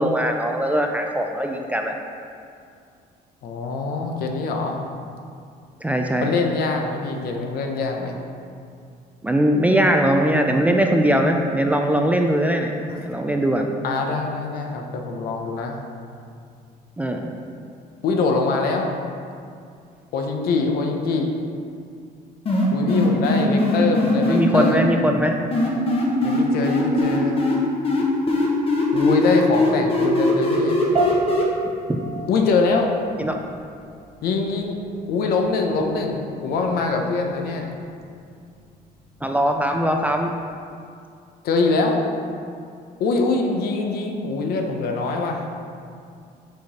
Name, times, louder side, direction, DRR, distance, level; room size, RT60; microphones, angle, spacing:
voice 1, 0.0-1.9 5.8-6.3 9.2-12.7 13.0-13.7 17.0-17.3 24.3-25.4 31.9-32.0 33.2-33.3 39.2-40.3, equal, 10° right, 2 dB, 0.3 m, -20 dB
voice 2, 3.4-4.8 6.2-8.2 12.9-13.0 13.8-15.8 18.0-18.9 20.1-21.3 22.7-24.8 26.2-27.4 28.9-30.9 32.3-32.9 34.2-34.8 35.1-37.7 41.4-42.0 43.0-45.5, left 3 dB, 65° left, 3 dB, 0.8 m, -23 dB
sound 1, 22.5-24.7 25.5-27.6 27.8-31.4, left 2 dB, 35° left, 1.0 m, -20 dB
sound 2, 30.9-40.5, right 3 dB, 35° right, 0.7 m, -34 dB
6.4 x 4.9 x 4.2 m, 2.4 s
cardioid pair, 145°, 17 cm